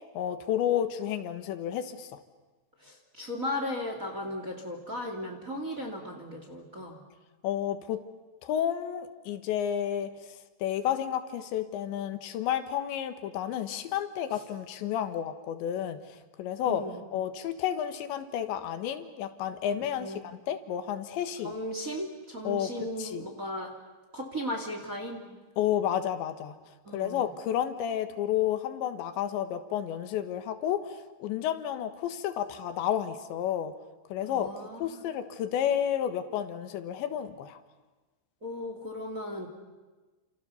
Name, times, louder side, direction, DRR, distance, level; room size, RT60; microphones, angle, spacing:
voice 1, 0.2-2.2 7.4-8.0 8.4-10.1 10.6-16.8 17.1-21.5 22.5-23.3 25.6-26.6 26.9-33.7 34.1-34.5 34.8-37.6, left 10 dB, 85° left, 9 dB, 3.7 m, -31 dB
voice 2, 2.8-7.0 14.3-14.4 16.7-17.0 19.8-20.2 21.4-23.7 24.1-25.4 26.8-27.3 34.3-35.0 38.4-39.5, left 1 dB, 25° right, 3 dB, 2.3 m, -36 dB
30.0 x 27.5 x 7.1 m, 1.3 s
omnidirectional pair, 5.1 m